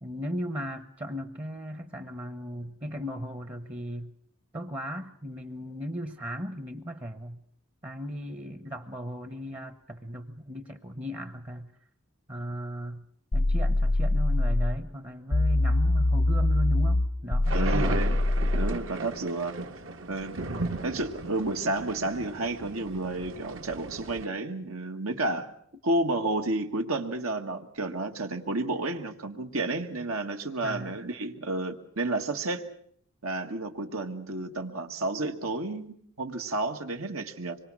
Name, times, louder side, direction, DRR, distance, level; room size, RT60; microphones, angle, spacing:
voice 1, 0.0-4.1 4.5-7.4 7.8-11.7 12.3-13.0 13.3-18.1 20.4-20.8 30.6-31.0, equal, 25° right, 9 dB, 0.9 m, -36 dB
sound 1, 13.3-14.8 15.3-18.8, left 1 dB, 70° left, 0.9 m, -24 dB
sound 2, 17.4-24.3, right 3 dB, 65° right, 1.4 m, -37 dB
voice 2, 17.5-18.2 18.5-19.6 20.1-20.5 20.8-25.5 25.8-32.7 33.2-37.6, right 2 dB, 85° right, 4 dB, 1.7 m, -31 dB
25.5 x 23.5 x 6.2 m, 0.63 s
head